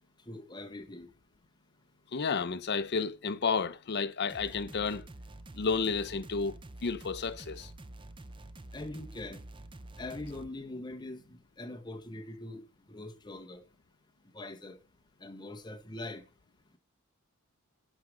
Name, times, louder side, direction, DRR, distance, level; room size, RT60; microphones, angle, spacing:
voice 1, 0.3-1.1 8.7-9.4 10.0-13.6 14.3-14.8 15.2-16.2, left 2 dB, 20° left, 1.3 m, -42 dB
voice 2, 2.1-5.1 5.5-7.7, left 5 dB, 50° left, 0.7 m, -31 dB
sound 1, 4.3-10.5, right 2 dB, 25° right, 0.6 m, -48 dB
11.5 x 4.9 x 6.4 m
head